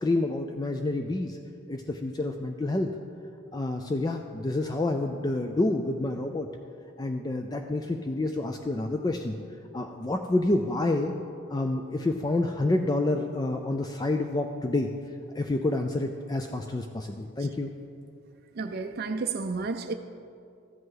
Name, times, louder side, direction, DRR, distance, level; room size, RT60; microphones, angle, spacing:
voice 1, 0.0-1.4 1.7-2.9 3.5-6.5 7.0-9.4 9.7-11.1 11.5-14.9 15.3-17.7, left 2 dB, 20° left, 4 dB, 0.3 m, -28 dB
voice 2, 18.6-19.9, right 4 dB, 50° right, 7 dB, 0.4 m, -31 dB
13.5 x 8.0 x 3.9 m, 2.4 s
head